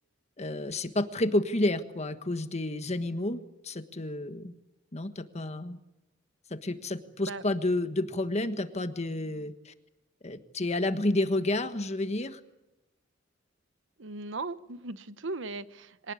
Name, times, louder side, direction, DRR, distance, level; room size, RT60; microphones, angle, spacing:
voice 1, 0.4-4.5 4.9-5.8 6.5-9.7 10.2-12.4, left 1 dB, 35° left, 10 dB, 1.4 m, -30 dB
voice 2, 14.0-16.1, right 3 dB, 70° right, 14 dB, 1.0 m, -37 dB
24.5 x 18.5 x 9.6 m, 0.99 s
head